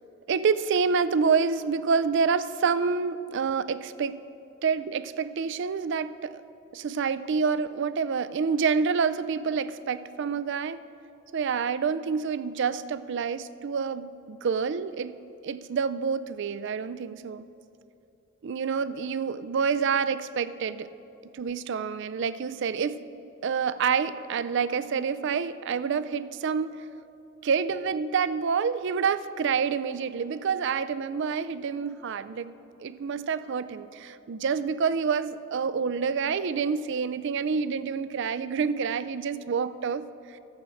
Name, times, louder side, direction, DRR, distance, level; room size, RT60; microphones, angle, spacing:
voice 1, 0.3-4.2 4.6-6.4 6.7-10.8 11.3-15.1 15.4-17.5 18.4-20.9 21.3-23.0 23.4-26.8 27.4-40.4, right 5 dB, 60° right, 15 dB, 0.4 m, -28 dB
13.0 x 7.7 x 6.3 m, 2.8 s
head